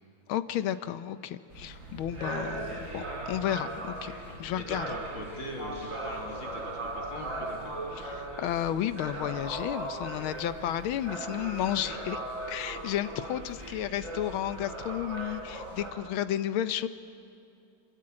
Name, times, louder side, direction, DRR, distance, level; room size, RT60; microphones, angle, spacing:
voice 1, 0.3-4.1 4.4-4.9 8.0-12.2 12.5-16.9, left 11 dB, 90° left, 12 dB, 1.6 m, -32 dB
sound 1, 1.5-15.9, right 2 dB, 40° right, 5.6 m, -38 dB
voice 2, 4.2-7.7, left 2 dB, 70° left, 1 dB, 3.6 m, -41 dB
25.5 x 21.5 x 8.8 m, 2.6 s
omnidirectional pair, 2.2 m